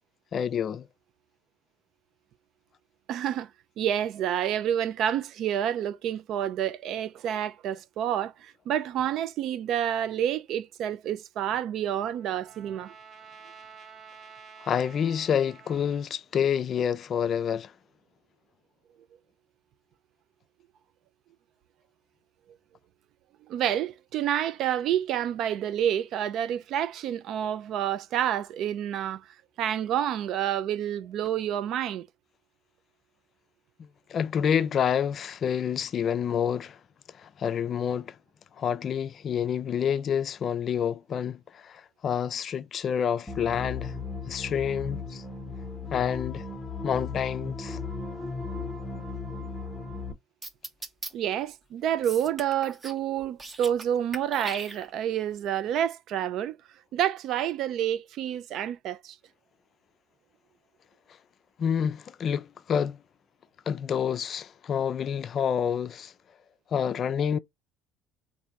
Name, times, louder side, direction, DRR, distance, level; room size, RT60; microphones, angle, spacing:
voice 1, 0.3-0.9 14.6-17.7 34.1-36.8 37.2-38.1 38.6-44.0 44.3-45.2 45.9-46.4 46.8-47.8 61.6-63.0 63.7-66.1 66.7-67.4, left 8 dB, 45° left, 0.4 m, -28 dB
voice 2, 3.1-3.5 3.8-12.9 23.5-32.1 51.1-56.6 56.9-59.2, right 10 dB, 60° right, 0.4 m, -29 dB
Trumpet, 11.7-16.1, right 6 dB, 45° right, 1.0 m, -50 dB
sound 1, 43.3-50.1, left 4 dB, 15° left, 0.9 m, -36 dB
sound 2, 50.4-51.1 52.0-53.0 53.3-53.9 54.1-55.2, right 2 dB, 20° right, 0.8 m, -39 dB
3.3 x 2.6 x 4.0 m
supercardioid pair, 95°, 0 cm